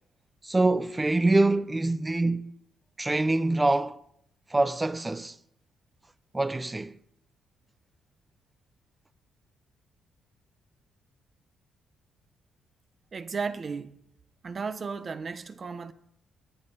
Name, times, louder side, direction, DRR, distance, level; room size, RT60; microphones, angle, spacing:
voice 1, 0.4-2.5 3.0-4.0 4.5-5.4 6.3-7.0, right 2 dB, 15° right, 0.6 m, -25 dB
voice 2, 13.1-14.0 14.4-15.9, right 5 dB, 40° right, 0.9 m, -34 dB
23.0 x 9.9 x 4.1 m
cardioid pair, 90°, 0 cm